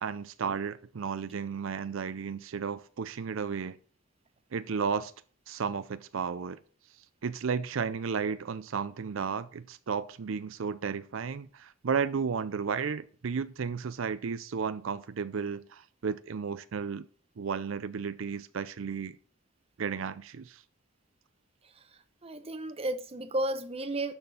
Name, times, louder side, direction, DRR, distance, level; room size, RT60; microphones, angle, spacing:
voice 1, 0.0-3.8 4.5-5.1 5.5-6.6 7.2-17.0 17.4-19.2 19.8-20.6, right 6 dB, 75° right, 0.5 m, -33 dB
voice 2, 22.2-24.1, right 1 dB, 30° right, 0.8 m, -33 dB
12.0 x 4.4 x 6.9 m
head